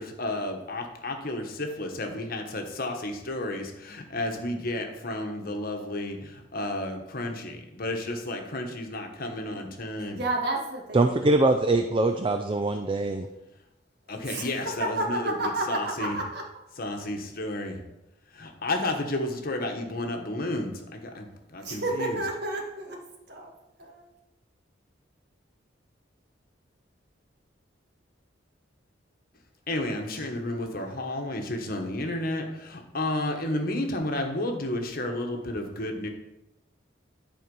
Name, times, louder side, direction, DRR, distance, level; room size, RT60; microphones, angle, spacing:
voice 1, 0.0-10.2 14.1-16.2 16.8-17.8 18.3-22.2 29.7-36.1, left 1 dB, 50° left, 3 dB, 1.3 m, -32 dB
voice 2, 10.0-11.0 14.3-16.4 21.6-23.0 23.3-23.5 23.8-24.0, right 2 dB, 60° right, 1 dB, 1.8 m, -31 dB
voice 3, 10.9-13.3, right 2 dB, 25° right, 6 dB, 0.4 m, -23 dB
11.0 x 4.5 x 5.4 m, 0.93 s
head